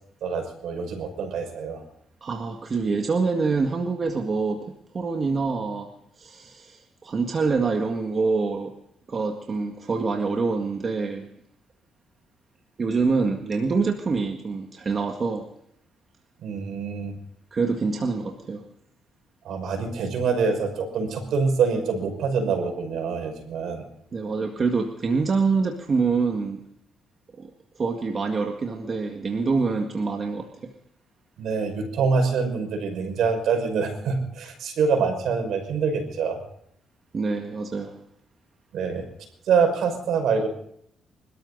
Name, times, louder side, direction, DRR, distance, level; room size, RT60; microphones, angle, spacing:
voice 1, 0.2-1.8 16.4-17.2 19.4-23.9 31.4-36.4 38.7-39.1 39.5-40.5, right 5 dB, 75° right, 6 dB, 5.6 m, -25 dB
voice 2, 2.2-5.9 6.2-8.7 9.1-11.3 12.8-15.5 17.5-18.6 24.1-26.6 27.4-27.5 27.8-30.7 37.1-38.0, right 4 dB, 40° right, 3 dB, 1.9 m, -26 dB
26.5 x 13.5 x 4.1 m, 0.70 s
cardioid pair, 90°, 0 cm